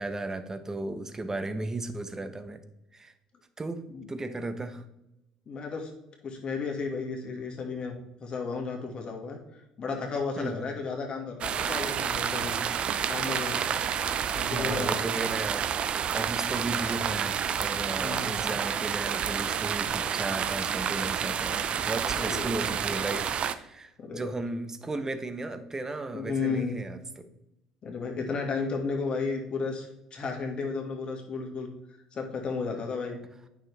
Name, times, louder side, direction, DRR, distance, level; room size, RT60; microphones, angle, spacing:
voice 1, 0.0-2.6 2.9-3.1 3.6-3.8 4.1-4.8 10.4-10.7 14.5-27.3, right 2 dB, 20° right, 10 dB, 0.9 m, -35 dB
voice 2, 5.5-5.9 6.2-12.7 13.0-13.6 14.4-15.1 18.0-18.3 22.1-22.6 24.0-24.3 26.1-26.8 27.8-33.2, left 4 dB, 40° left, 1 dB, 1.9 m, -33 dB
sound 1, 11.4-23.6, right 8 dB, 50° right, 0.5 m, -29 dB
8.9 x 6.1 x 3.4 m, 0.90 s
hypercardioid pair, 65°, 2 cm